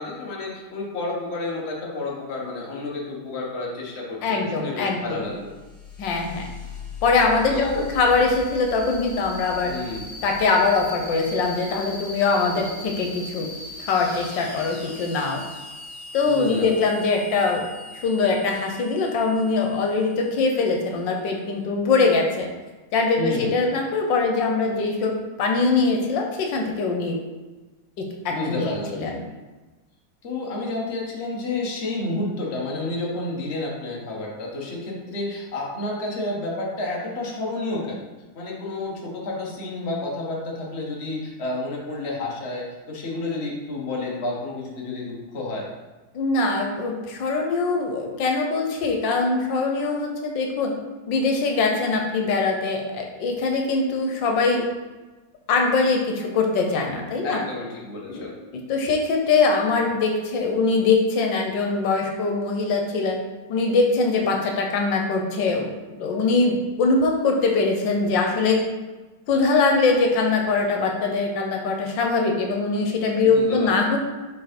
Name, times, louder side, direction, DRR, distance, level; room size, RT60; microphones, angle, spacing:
voice 1, 0.0-5.4 7.5-7.8 9.7-10.1 16.2-16.8 23.2-23.6 28.3-29.2 30.2-38.1 38.3-45.7 57.2-58.4 73.2-73.9, left 2 dB, 40° left, -3 dB, 1.3 m, -30 dB
voice 2, 4.2-5.2 6.0-6.5 7.0-9.7 10.2-13.5 13.8-15.4 16.1-17.6 17.9-22.5 22.9-27.1 28.0-29.2 46.1-50.7 51.1-54.6 55.5-57.4 58.1-58.2 58.5-63.2 63.5-65.7 66.0-68.6 69.3-74.0, left 4 dB, 90° left, 2 dB, 1.5 m, -22 dB
sound 1, 5.1-21.4, left 2 dB, 55° left, 1.7 m, -40 dB
4.7 x 3.9 x 5.1 m, 1.2 s
omnidirectional pair, 2.0 m